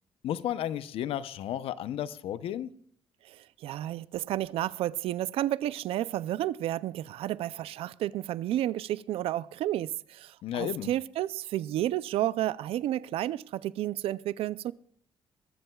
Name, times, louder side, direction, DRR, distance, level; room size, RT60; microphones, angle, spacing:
voice 1, 0.2-2.7 10.4-10.9, left 11 dB, 80° left, 0.6 m, -33 dB
voice 2, 3.2-14.7, right 13 dB, 85° right, 0.4 m, -31 dB
21.0 x 13.5 x 2.3 m
cardioid pair, 140°, 10 cm